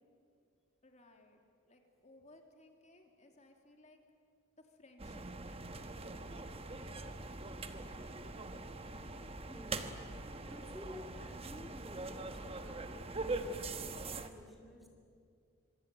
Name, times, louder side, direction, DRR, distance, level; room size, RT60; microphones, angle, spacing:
voice 1, 0.8-4.0 4.6-5.9 6.3-8.3, left 2 dB, 30° left, 3 dB, 2.9 m, -62 dB
sound 1, 5.0-14.3, right 2 dB, 25° right, 1.2 m, -43 dB
voice 2, 9.5-10.0 10.4-14.9, left 1 dB, ahead, 1 dB, 2.2 m, -53 dB
26.0 x 24.5 x 9.1 m, 2.4 s
head